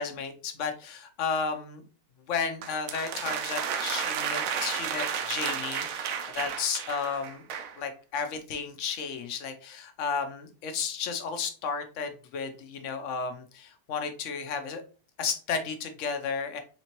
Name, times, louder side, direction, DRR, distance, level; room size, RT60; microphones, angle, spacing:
voice 1, 0.0-1.8 2.3-7.4 7.8-14.8 15.2-16.6, left 5 dB, 60° left, 7 dB, 0.9 m, -33 dB
sound 1, 2.6-7.8, right 7 dB, 70° right, 0.9 m, -32 dB
4.3 x 2.8 x 3.0 m, 0.38 s
omnidirectional pair, 1.7 m